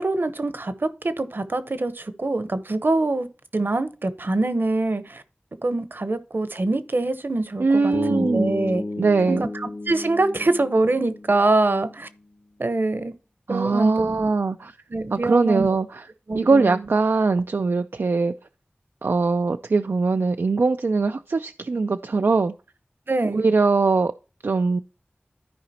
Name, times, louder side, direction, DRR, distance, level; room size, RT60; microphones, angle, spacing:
voice 1, 0.0-3.3 3.5-5.2 5.6-8.8 9.3-12.1 12.6-13.1 13.5-14.3 14.9-15.7 16.3-16.8 23.1-23.4, right 2 dB, 60° right, 0.9 m, -24 dB
voice 2, 7.6-8.5 9.0-9.5 13.5-14.8 15.1-16.1 16.3-18.3 19.0-22.5 23.3-24.1 24.4-24.8, right 4 dB, 80° right, 0.4 m, -21 dB
Bass guitar, 7.9-12.0, left 2 dB, 45° left, 1.0 m, -33 dB
13.5 x 4.9 x 2.8 m
wide cardioid pair, 50°, 4 cm